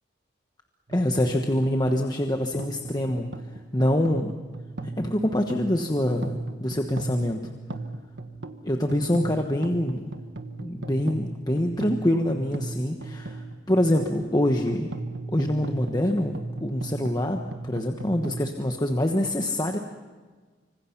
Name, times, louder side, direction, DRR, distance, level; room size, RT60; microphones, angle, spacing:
voice 1, 0.9-3.3 3.7-4.3 4.8-7.4 8.6-10.0 10.6-14.9 15.3-19.8, left 1 dB, 20° left, 4 dB, 1.2 m, -25 dB
sound 1, 0.9-18.5, right 2 dB, 85° right, 1.5 m, -38 dB
25.5 x 25.5 x 6.0 m, 1.4 s
head